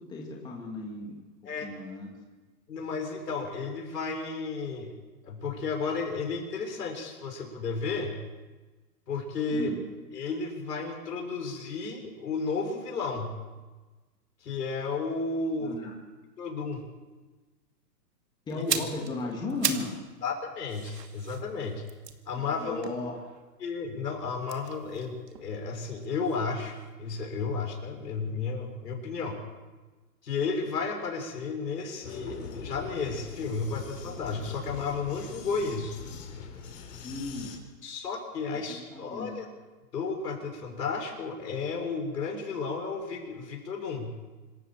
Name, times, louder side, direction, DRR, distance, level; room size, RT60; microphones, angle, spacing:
voice 1, 0.1-1.2 1.6-2.1 9.5-9.8 15.6-15.9 18.5-19.9 22.6-23.1 37.0-37.5 38.7-39.4, left 2 dB, 10° left, -2 dB, 2.4 m, -35 dB
voice 2, 2.7-4.9 5.2-8.1 9.1-9.7 10.1-13.3 14.4-15.7 16.4-16.8 18.5-18.6 20.2-21.8 22.3-22.8 23.6-29.4 30.2-36.0 37.8-39.5 39.9-44.1, left 4 dB, 75° left, 2 dB, 6.3 m, -33 dB
sound 1, 18.5-20.0 20.3-23.6 24.4-26.4 26.7-26.9, right 8 dB, 80° right, 2.4 m, -36 dB
Vehicle, 32.0-37.6, left 6 dB, 50° left, 4.9 m, -42 dB
26.0 x 14.0 x 7.5 m, 1.3 s
hypercardioid pair, 160°, 49 cm